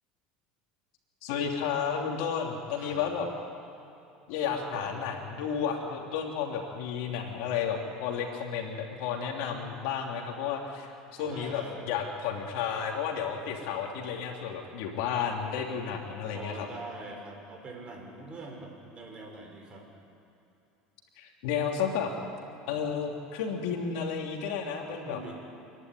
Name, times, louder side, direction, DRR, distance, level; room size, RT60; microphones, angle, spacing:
voice 1, 1.2-3.3 4.3-16.7 21.2-22.1 22.7-25.3, left 7 dB, 75° left, 1 dB, 3.0 m, -32 dB
voice 2, 2.8-3.1 4.6-4.9 11.2-11.9 16.3-19.9 24.8-25.3, right 2 dB, 30° right, 1 dB, 5.9 m, -44 dB
28.0 x 11.0 x 9.6 m, 2.8 s
supercardioid pair, 105°, 4 cm